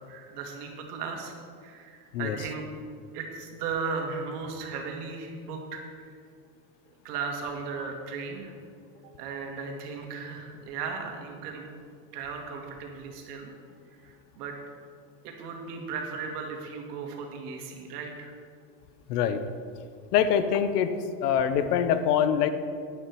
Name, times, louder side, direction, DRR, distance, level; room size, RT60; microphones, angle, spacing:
voice 1, 0.0-1.3 1.6-2.6 3.1-6.1 7.0-8.6 9.2-11.7 12.1-13.5 13.9-14.6 15.2-18.3, right 5 dB, 80° right, 2 dB, 2.3 m, -36 dB
voice 2, 19.1-19.4 20.1-20.9 21.2-22.5, left 8 dB, 80° left, 11 dB, 1.0 m, -24 dB
12.0 x 9.6 x 4.8 m, 2.3 s
supercardioid pair, 130°, 47 cm